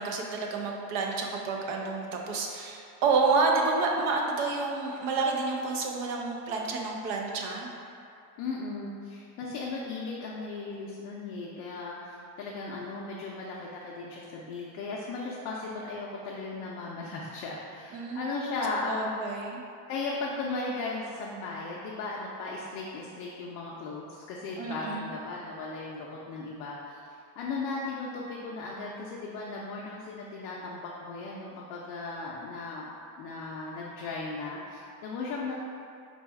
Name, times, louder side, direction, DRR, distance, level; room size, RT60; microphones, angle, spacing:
voice 1, 0.0-7.7 17.9-18.6 18.8-19.6 24.6-25.1, right 4 dB, 75° right, 0 dB, 0.7 m, -29 dB
voice 2, 8.4-19.3 19.9-27.0 27.4-32.9 33.2-35.5, left 3 dB, 50° left, -4 dB, 0.4 m, -36 dB
4.0 x 2.3 x 4.5 m, 2.6 s
cardioid pair, 180°, 42 cm